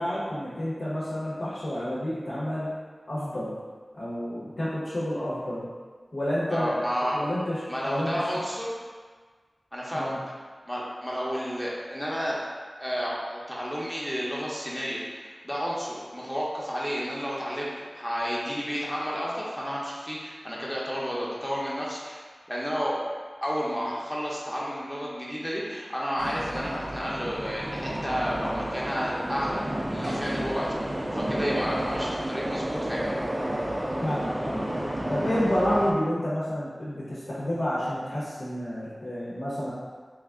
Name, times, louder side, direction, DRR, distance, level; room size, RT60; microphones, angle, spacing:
voice 1, 0.0-2.7 3.1-3.5 3.9-5.7 6.1-8.3 9.9-10.2 34.0-34.7 35.1-39.7, equal, 70° left, -9 dB, 0.9 m, -29 dB
voice 2, 6.5-7.2 7.7-8.8 9.7-10.2 10.7-12.4 12.8-22.2 22.5-23.0 23.4-33.1, equal, 5° left, -6 dB, 0.8 m, -31 dB
sound 1, 26.2-35.9, right 1 dB, 30° right, 0.5 m, -31 dB
3.3 x 2.3 x 3.5 m, 1.5 s
wide cardioid pair, 60°, 0 cm